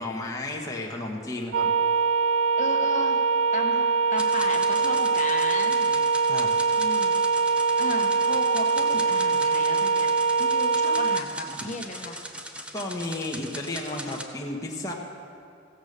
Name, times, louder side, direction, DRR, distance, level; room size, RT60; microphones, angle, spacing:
voice 1, 0.0-1.7 6.3-6.6 12.7-14.9, left 2 dB, 15° left, -2 dB, 1.2 m, -33 dB
sound 1, 1.5-11.3, right 4 dB, 85° right, 0.5 m, -23 dB
voice 2, 2.6-3.2 3.5-3.8 4.1-6.0 6.7-7.1 7.8-12.2, left 2 dB, 40° left, 3 dB, 1.3 m, -35 dB
sound 2, 4.2-14.2, right 1 dB, 5° right, 0.7 m, -40 dB
15.5 x 8.1 x 6.6 m, 2.5 s
head